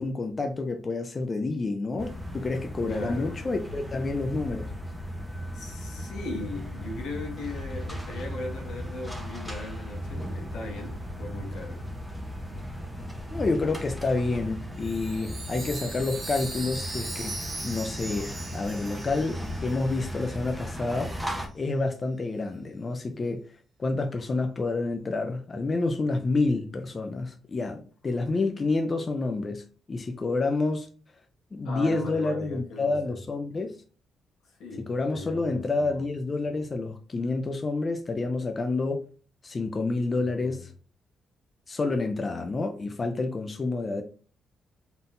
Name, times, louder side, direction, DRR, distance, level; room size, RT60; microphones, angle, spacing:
voice 1, 0.0-4.7 13.3-17.3 17.6-23.4 23.8-30.9 31.5-33.8 34.9-39.0 39.4-40.7 41.7-44.0, left 3 dB, 30° left, 0.5 m, -29 dB
sound 1, 2.0-21.5, equal, 5° right, 0.9 m, -37 dB
voice 2, 2.9-3.4 5.5-11.8 31.6-33.2 34.4-36.1 40.2-40.7, left 2 dB, 90° left, 1.6 m, -38 dB
Chime, 14.8-20.3, right 2 dB, 25° right, 1.4 m, -39 dB
4.0 x 3.8 x 2.6 m
cardioid pair, 100°, 0 cm